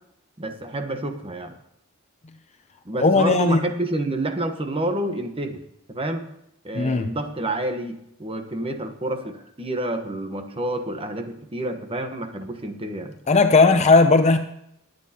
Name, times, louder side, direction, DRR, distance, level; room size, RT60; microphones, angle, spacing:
voice 1, 0.4-1.5 2.8-5.6 5.9-6.3 6.6-13.1, right 1 dB, 25° right, 1.2 m, -29 dB
voice 2, 3.0-3.6 6.7-7.1 13.3-14.4, left 3 dB, 30° left, 0.6 m, -16 dB
20.5 x 9.2 x 2.9 m
head